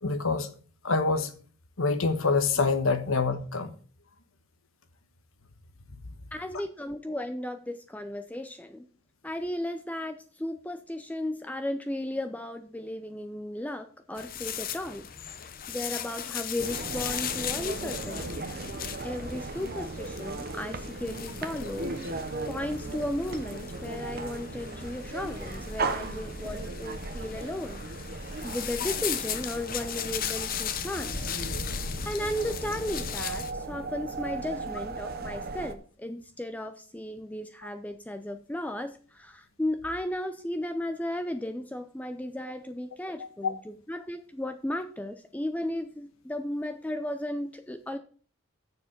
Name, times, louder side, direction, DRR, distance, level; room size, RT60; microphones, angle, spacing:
voice 1, 0.0-0.5 0.8-1.3 1.8-3.7 5.9-6.0 43.4-43.5, left 4 dB, 85° left, 1.2 m, -26 dB
voice 2, 6.3-8.9 9.2-15.1 15.4-18.5 19.0-21.9 22.5-31.3 31.7-48.0, left 1 dB, 5° left, 0.5 m, -35 dB
sound 1, 14.2-33.5, left 8 dB, 45° left, 0.7 m, -37 dB
sound 2, 16.6-35.8, right 3 dB, 50° right, 0.9 m, -37 dB
7.0 x 7.0 x 5.9 m
head